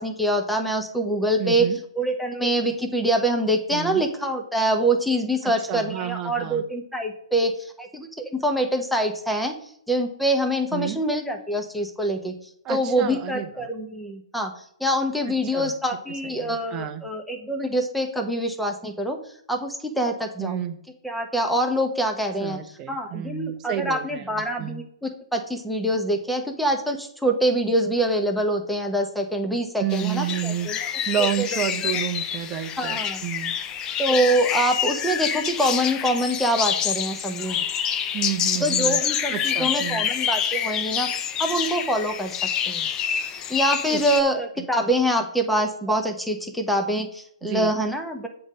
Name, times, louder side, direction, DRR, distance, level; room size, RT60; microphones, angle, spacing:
voice 1, 0.0-1.7 2.0-9.5 9.9-12.3 12.7-14.5 14.8-19.2 19.5-20.6 21.0-22.6 22.9-30.8 31.2-31.5 31.9-32.0 32.8-33.2 34.0-37.6 38.6-42.4 42.7-42.9 43.5-48.3, right 1 dB, ahead, 3 dB, 1.0 m, -25 dB
voice 2, 1.4-1.8 3.7-4.1 5.7-6.6 10.7-11.0 12.6-13.7 15.5-15.7 16.2-17.1 20.4-20.8 22.4-24.8 29.8-33.6 38.1-39.0 39.3-40.1 43.9-44.0 47.4-47.7, right 11 dB, 20° right, 6 dB, 0.7 m, -30 dB
sound 1, 29.9-44.2, left 9 dB, 20° left, 0.5 m, -27 dB
7.8 x 3.9 x 5.4 m, 0.70 s
hypercardioid pair, 135°, 3 cm